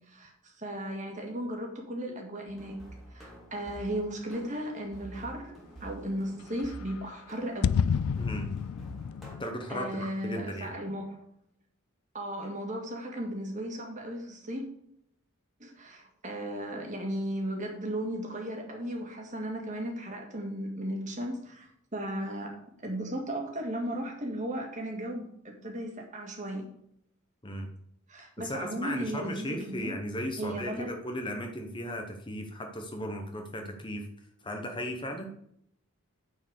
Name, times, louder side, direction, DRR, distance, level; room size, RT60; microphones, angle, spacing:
voice 1, 0.1-2.8 3.1-5.5 5.8-7.7 9.7-11.2 12.1-14.6 15.6-22.6 22.8-26.7 28.1-30.0 30.4-30.9, right 1 dB, 35° right, 1 dB, 1.9 m, -36 dB
sound 1, 2.5-9.3, right 1 dB, ahead, 2.2 m, -48 dB
sound 2, 6.6-6.7 6.9-7.0 7.6-9.5, left 7 dB, 75° left, 0.3 m, -29 dB
voice 2, 8.2-8.5 9.4-10.8 27.4-27.7 28.4-34.1 34.4-35.3, equal, 20° left, 4 dB, 0.9 m, -36 dB
9.3 x 4.6 x 6.4 m, 0.72 s
head